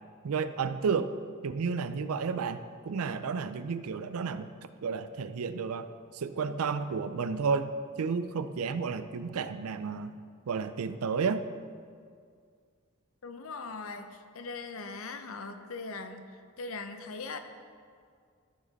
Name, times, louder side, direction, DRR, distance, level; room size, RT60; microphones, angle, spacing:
voice 1, 0.2-1.1 1.4-4.5 4.8-5.9 6.1-10.2 10.5-11.4, right 5 dB, 80° right, 12 dB, 0.4 m, -32 dB
voice 2, 13.2-17.4, left 4 dB, 65° left, 8 dB, 0.7 m, -40 dB
14.0 x 5.1 x 4.0 m, 2.1 s
head